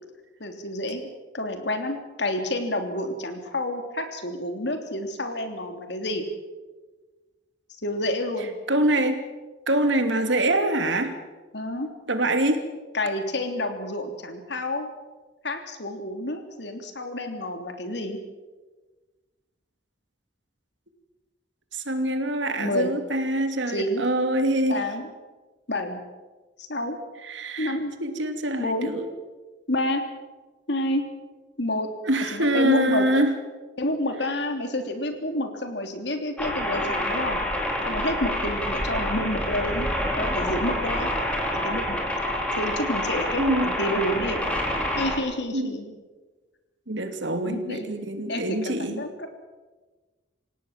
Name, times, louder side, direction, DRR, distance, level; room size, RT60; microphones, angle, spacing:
voice 1, 0.4-1.0 1.3-6.2 7.8-8.6 11.5-11.9 12.9-14.9 15.4-18.2 22.6-22.9 23.7-24.0 24.7-25.1 25.7-26.0 26.6-27.0 27.6-27.9 28.6-28.9 29.7-30.0 30.7-31.0 31.6-31.9 32.3-33.1 33.8-37.4 37.8-39.9 40.2-41.1 41.6-42.0 42.6-44.5 45.0-46.0 47.4-47.9 48.3-49.3, left 1 dB, 65° left, 6 dB, 3.3 m, -29 dB
voice 2, 8.7-9.2 9.7-11.2 12.1-12.7 21.7-24.8 27.2-29.1 32.0-33.4 42.4-42.5 43.4-44.0 45.5-45.7 46.9-49.0, right 1 dB, 80° right, 7 dB, 2.9 m, -25 dB
sound 1, 36.4-45.2, left 1 dB, 5° left, 4.2 m, -27 dB
28.0 x 17.5 x 7.5 m, 1.3 s
head